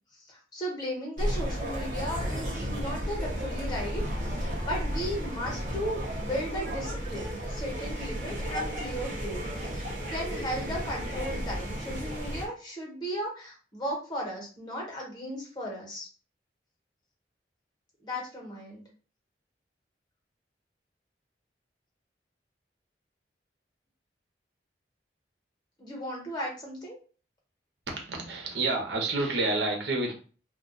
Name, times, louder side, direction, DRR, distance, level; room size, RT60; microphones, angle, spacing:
voice 1, 0.1-16.1 18.0-18.8 25.8-27.0, equal, 25° left, -2 dB, 1.2 m, -36 dB
sound 1, 1.2-12.5, equal, 45° right, 0.7 m, -33 dB
voice 2, 27.9-30.1, right 2 dB, 80° right, 1 dB, 0.9 m, -29 dB
2.5 x 2.2 x 3.9 m, 0.39 s
head